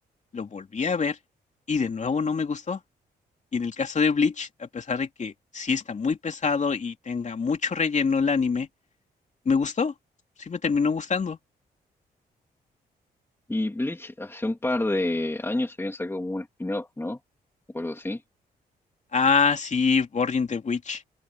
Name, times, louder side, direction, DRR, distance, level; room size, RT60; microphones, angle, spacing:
voice 1, 0.3-1.2 1.7-2.8 3.5-8.7 9.4-9.9 10.4-11.4 19.1-21.0, left 5 dB, 45° left, 2.9 m, -25 dB
voice 2, 13.5-17.2 17.7-18.2, left 2 dB, 15° left, 2.3 m, -29 dB
cardioid pair, 70°, 17 cm